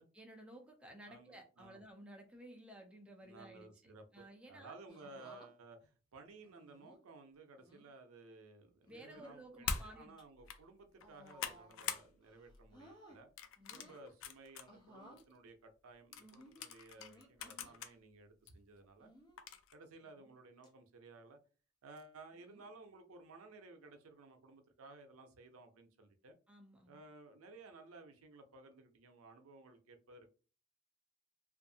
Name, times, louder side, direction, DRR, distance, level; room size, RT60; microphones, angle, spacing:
voice 1, 0.1-4.8 8.9-10.1 13.6-14.0 26.5-27.0, right 1 dB, 5° right, 0.4 m, -55 dB
voice 2, 1.1-1.8 3.2-13.3 13.7-19.1 19.7-21.4 21.8-26.4 26.9-30.3, right 3 dB, 80° right, 0.5 m, -57 dB
sound 1, 4.9-5.5 6.4-7.0 7.6-7.9 8.8-9.4 10.0-10.2 11.0-11.9 12.2-13.2 13.6-14.1 14.7-15.2 16.2-17.8 19.0-19.4 20.0-20.4 20.6-20.7 22.3-22.7 23.8-24.1, equal, 20° left, 0.8 m, -60 dB
sound 2, 9.6-9.9 10.4-10.6 11.0-12.1 12.4-12.7 13.4-14.7 15.2-15.3 16.1-17.9 18.5-18.6 19.4-19.7, left 6 dB, 65° left, 0.4 m, -43 dB
2.6 x 2.4 x 2.6 m
head